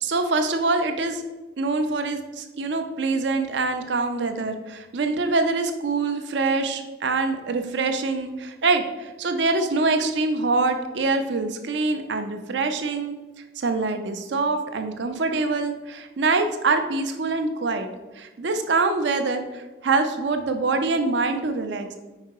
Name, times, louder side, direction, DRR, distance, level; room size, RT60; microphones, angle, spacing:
voice 1, 0.0-1.2 1.6-13.2 13.6-17.9 18.2-22.0, right 3 dB, 75° right, 7 dB, 0.5 m, -24 dB
4.8 x 4.7 x 4.6 m, 1.1 s
head